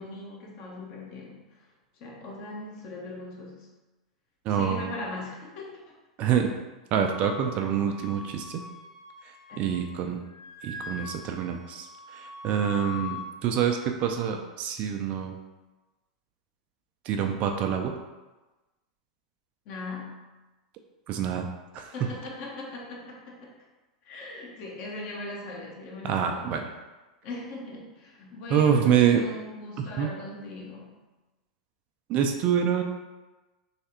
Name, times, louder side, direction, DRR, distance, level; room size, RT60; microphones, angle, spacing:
voice 1, 0.0-1.4 2.0-3.7 4.5-5.8 9.5-9.7 19.7-20.1 21.9-23.5 24.0-26.5 27.2-30.9, left 2 dB, 50° left, -2 dB, 1.0 m, -39 dB
voice 2, 4.5-4.9 6.2-6.5 6.9-8.6 9.6-10.2 10.6-11.9 12.1-15.4 17.1-17.9 21.1-21.5 21.7-21.9 26.0-26.6 28.5-29.2 30.0-30.1 32.1-32.8, right 8 dB, 40° right, 4 dB, 0.4 m, -26 dB
Wind instrument woodwind instrument, 7.1-10.0 10.2-13.3, left 5 dB, 65° left, 0.6 m, -42 dB
3.3 x 3.1 x 2.9 m, 1.1 s
figure-of-eight pair, 90°, 3 cm